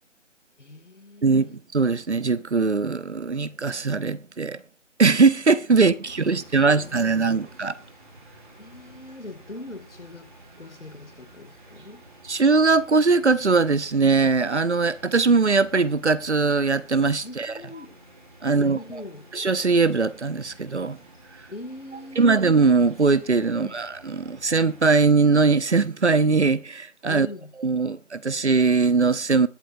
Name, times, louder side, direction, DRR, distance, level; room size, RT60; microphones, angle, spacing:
voice 1, 0.6-1.6 5.8-7.5 8.6-10.3 10.6-12.0 17.2-18.0 18.5-19.3 21.5-22.3 23.5-23.8 27.1-27.5, left 2 dB, 65° left, 2.4 m, -42 dB
voice 2, 1.2-4.6 5.0-7.7 12.3-17.5 18.4-18.8 19.3-21.0 22.2-27.3 27.6-29.5, right 4 dB, 60° right, 0.8 m, -21 dB
sound 1, 6.0-25.0, right 1 dB, 40° right, 2.8 m, -51 dB
21.0 x 8.0 x 2.7 m
figure-of-eight pair, 175°, 38 cm